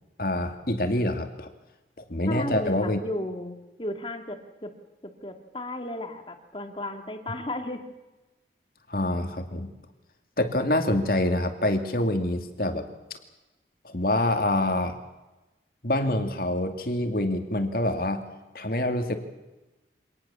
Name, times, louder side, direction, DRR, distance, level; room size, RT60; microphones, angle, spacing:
voice 1, 0.2-1.5 2.1-3.0 8.9-9.7 10.4-12.9 13.8-14.9 15.8-18.3 18.5-19.2, left 1 dB, 55° left, 7 dB, 2.5 m, -26 dB
voice 2, 2.3-4.7 5.0-7.8, left 1 dB, 30° left, 6 dB, 2.4 m, -34 dB
25.0 x 19.0 x 7.2 m, 1.0 s
head